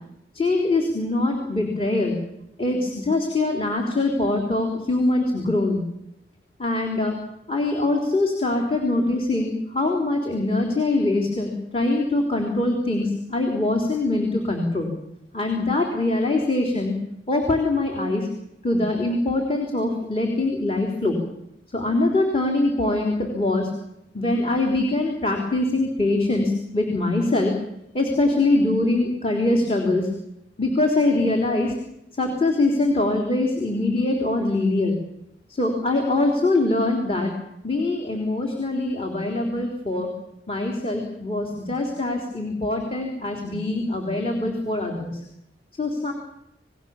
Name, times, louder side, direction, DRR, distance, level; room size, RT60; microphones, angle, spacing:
voice 1, 0.3-2.2 2.6-5.8 6.6-7.1 7.5-14.9 15.3-17.0 17.3-18.3 18.6-21.2 21.7-23.7 24.1-27.6 27.9-30.1 30.6-31.7 32.2-35.0 35.5-37.3 37.6-40.1 40.5-45.2 45.8-46.1, left 2 dB, 30° left, 2 dB, 3.9 m, -23 dB
28.5 x 20.0 x 7.3 m, 0.81 s
head